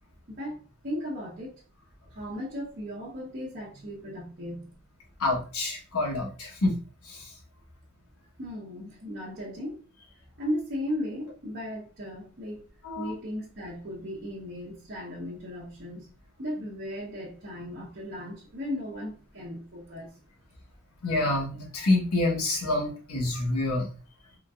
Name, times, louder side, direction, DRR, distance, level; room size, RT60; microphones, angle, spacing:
voice 1, 0.3-1.6 2.1-4.7 8.4-9.8 10.4-12.7 13.0-16.1 16.4-20.2, left 1 dB, 45° right, 0.8 m, -36 dB
voice 2, 5.2-6.8 7.0-7.3 12.8-13.1 21.0-23.9, left 2 dB, 90° left, 1.2 m, -27 dB
3.7 x 2.5 x 2.3 m
head